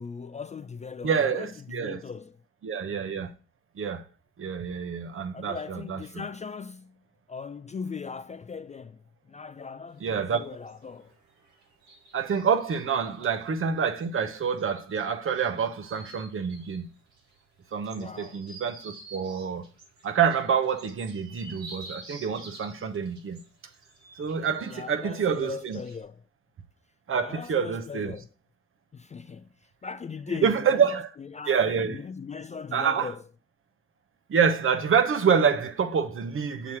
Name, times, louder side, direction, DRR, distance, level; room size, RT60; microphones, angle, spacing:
voice 1, 0.0-2.4 5.3-6.9 7.3-9.0 9.3-11.1 13.1-13.2 17.9-18.4 24.7-26.2 27.2-28.3 28.9-29.5 29.8-31.6 31.9-33.2, left 5 dB, 25° left, 0.3 m, -39 dB
voice 2, 1.0-2.0 2.6-3.3 3.8-4.0 4.4-6.2 10.0-10.5 12.1-16.9 17.7-19.6 20.0-23.4 24.2-25.8 27.1-28.1 30.4-31.1 31.5-32.0 32.7-33.1 34.3-36.8, right 6 dB, 45° right, 0.9 m, -27 dB
sound 1, 9.9-26.0, right 2 dB, 65° right, 3.9 m, -50 dB
7.0 x 3.2 x 5.9 m
cardioid pair, 90°, 30 cm